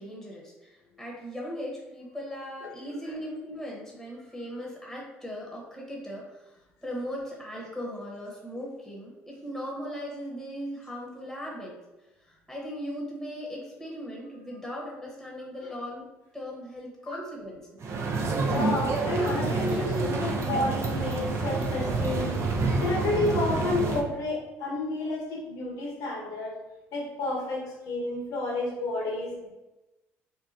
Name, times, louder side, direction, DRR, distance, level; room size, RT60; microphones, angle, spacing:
voice 1, 0.0-11.8 12.2-16.1 16.3-17.8, equal, 5° left, -3 dB, 1.0 m, -38 dB
sound 1, 17.8-24.0, right 3 dB, 45° right, 0.5 m, -28 dB
voice 2, 18.5-22.3 22.8-26.6 26.9-29.5, left 2 dB, 65° left, -3 dB, 1.0 m, -30 dB
3.8 x 2.2 x 2.7 m, 1.0 s
hypercardioid pair, 65°, 6 cm